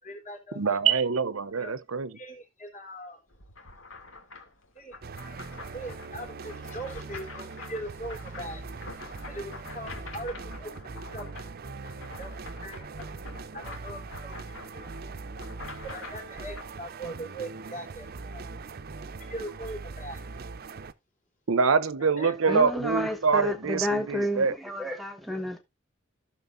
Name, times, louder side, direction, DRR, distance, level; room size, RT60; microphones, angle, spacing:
voice 1, 0.0-1.0 1.6-1.8 2.1-3.2 4.7-5.0 5.2-5.4 5.7-10.7 11.1-11.3 12.2-13.1 13.5-14.9 15.8-18.4 19.3-20.2 22.2-22.6, right 1 dB, 40° left, 3.3 m, -41 dB
voice 2, 0.6-2.1 21.5-24.5, right 5 dB, 85° right, 0.7 m, -25 dB
sound 1, 3.3-16.7, left 3 dB, 70° left, 2.5 m, -46 dB
sound 2, 5.0-20.9, right 4 dB, 50° right, 0.6 m, -41 dB
voice 3, 22.5-25.6, equal, ahead, 1.3 m, -30 dB
15.0 x 6.4 x 2.6 m
head